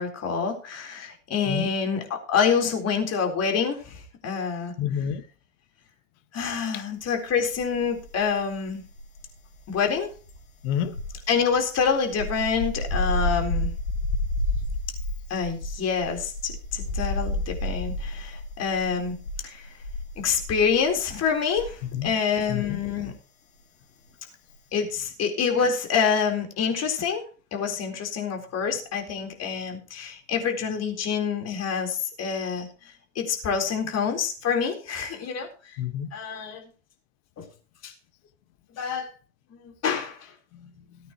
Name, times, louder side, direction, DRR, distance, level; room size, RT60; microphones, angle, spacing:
voice 1, 0.0-4.7 6.3-8.8 9.7-10.1 11.3-13.7 15.3-19.2 19.4-19.7 20.2-23.1 24.7-27.2 27.5-32.7 33.2-35.5 36.1-36.6 37.4-37.5 37.8-37.9 38.8-39.1 39.6-40.3, left 6 dB, 35° left, 4.1 m, -27 dB
voice 2, 4.8-5.2 6.7-6.8 10.6-11.0 21.9-22.1 22.5-22.8 35.8-36.1 40.6-40.7, left 9 dB, 55° left, 1.7 m, -28 dB
sound 1, 7.5-8.3 8.6-22.1 22.4-22.7, left 1 dB, 75° left, 5.7 m, -31 dB
18.0 x 9.2 x 3.1 m
hypercardioid pair, 90°, 44 cm